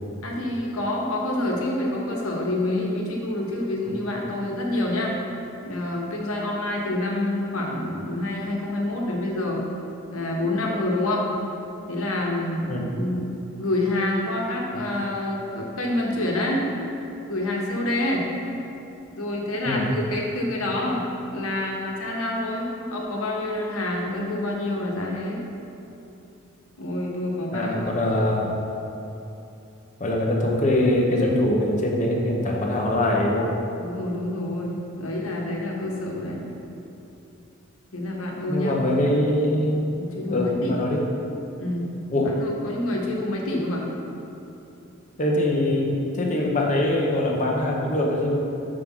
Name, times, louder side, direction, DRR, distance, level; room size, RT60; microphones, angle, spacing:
voice 1, 0.2-5.1 5.6-9.6 10.1-11.3 11.9-13.3 13.6-16.6 17.3-18.3 19.1-21.0 21.3-25.4 26.8-27.8 33.8-36.4 37.9-39.0 39.9-40.8 41.6-41.9 42.4-43.8, left 1 dB, 85° left, -1 dB, 1.2 m, -27 dB
voice 2, 27.5-28.5 30.0-33.5 38.5-39.9 40.3-41.0 42.1-42.4 45.2-48.4, left 1 dB, 35° left, -1 dB, 0.8 m, -23 dB
5.6 x 5.0 x 5.9 m, 3.0 s
head